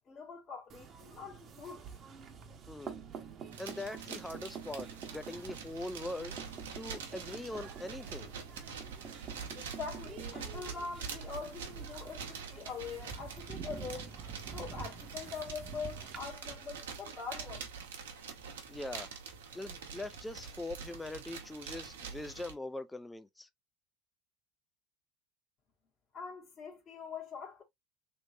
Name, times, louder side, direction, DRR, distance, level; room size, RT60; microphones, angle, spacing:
voice 1, 0.1-1.8 9.5-14.1 14.5-17.7 26.1-27.6, left 5 dB, 35° left, 1.3 m, -43 dB
sound 1, 0.7-16.2, right 6 dB, 40° right, 0.9 m, -48 dB
voice 2, 2.7-3.0 3.6-6.4 6.8-8.3 18.7-19.1 19.5-23.5, left 2 dB, 10° left, 0.4 m, -42 dB
sound 2, 3.5-22.5, right 6 dB, 80° right, 0.9 m, -45 dB
3.3 x 3.1 x 2.6 m
hypercardioid pair, 85°, 0 cm